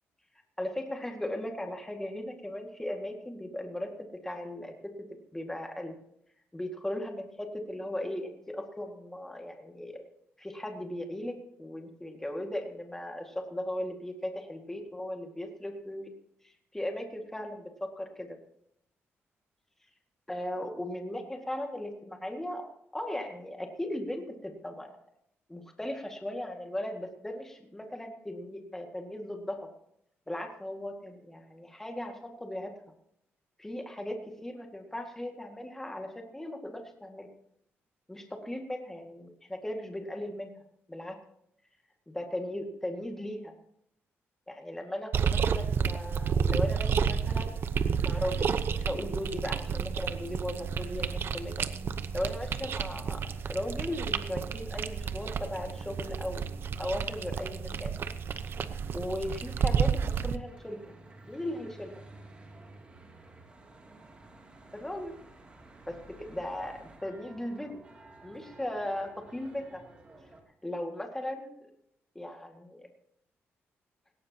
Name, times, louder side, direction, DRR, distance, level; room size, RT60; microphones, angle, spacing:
voice 1, 0.6-4.9 5.3-6.0 6.5-10.0 10.4-16.1 16.4-18.4 20.3-22.7 22.9-24.9 25.5-29.7 30.3-32.7 33.6-37.3 38.1-40.5 40.9-41.2 42.1-43.5 44.5-47.6 48.0-51.7 52.1-56.5 56.8-58.0 58.9-60.9 61.3-61.9 64.8-65.1 65.9-66.0 66.3-67.8 68.2-69.8 70.6-71.6 72.2-72.9, left 1 dB, 10° left, 3 dB, 2.0 m, -37 dB
sound 1, 45.1-60.4, right 7 dB, 55° right, 0.9 m, -31 dB
Church bell / Traffic noise roadway noise, 60.4-70.4, right 2 dB, 25° right, 2.7 m, -53 dB
18.5 x 17.5 x 2.9 m, 0.75 s
cardioid pair, 145°, 5 cm